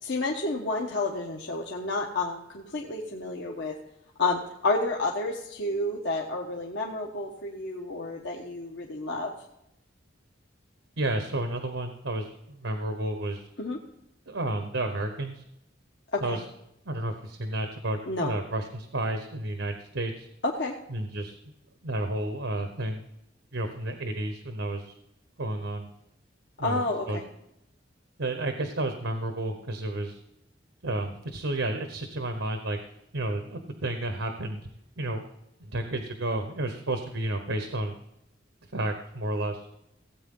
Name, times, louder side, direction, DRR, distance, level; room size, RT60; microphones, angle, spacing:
voice 1, 0.0-3.7 4.2-9.3 13.6-13.8 16.1-16.4 18.1-18.3 20.4-20.7 26.6-27.2, left 2 dB, 65° left, -2 dB, 1.3 m, -30 dB
voice 2, 11.0-13.4 14.3-15.4 16.2-16.4 16.8-20.3 20.9-21.3 21.8-23.0 23.5-24.9 25.4-25.9 26.6-27.2 28.2-30.2 30.8-32.8 33.1-34.6 35.0-35.2 35.6-37.9 38.6-39.7, right 1 dB, 85° right, 6 dB, 1.1 m, -31 dB
17.0 x 8.4 x 3.8 m, 0.82 s
head